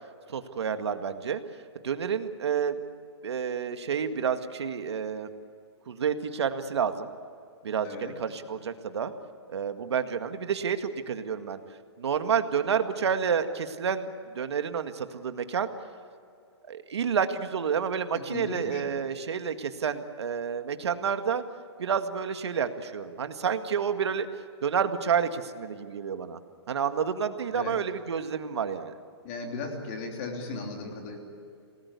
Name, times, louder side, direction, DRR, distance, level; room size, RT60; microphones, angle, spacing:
voice 1, 0.3-1.4 1.8-2.8 3.2-5.3 5.9-7.1 7.6-9.1 9.5-11.6 12.0-14.1 14.3-15.7 16.7-21.4 21.8-24.3 24.6-26.4 26.7-28.9, right 7 dB, 70° right, 8 dB, 1.9 m, -29 dB
voice 2, 7.8-8.1 18.3-18.8 27.5-27.8 29.2-31.2, left 3 dB, 25° left, 1 dB, 3.3 m, -36 dB
28.5 x 20.0 x 8.4 m, 2.4 s
hypercardioid pair, 175°, 14 cm